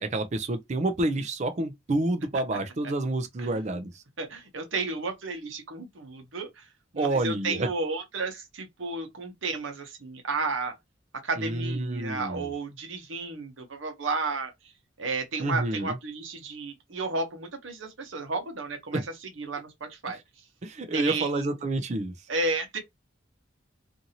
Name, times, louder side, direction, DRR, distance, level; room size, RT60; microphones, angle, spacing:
voice 1, 0.0-4.0 7.0-7.7 11.4-12.5 15.4-15.9 18.9-19.0 20.6-22.1, right 2 dB, 35° right, 0.4 m, -28 dB
voice 2, 3.4-3.8 4.2-10.8 11.2-14.7 15.0-20.2 20.9-21.5 22.3-22.8, right 3 dB, 75° right, 0.9 m, -33 dB
2.6 x 2.6 x 2.8 m
head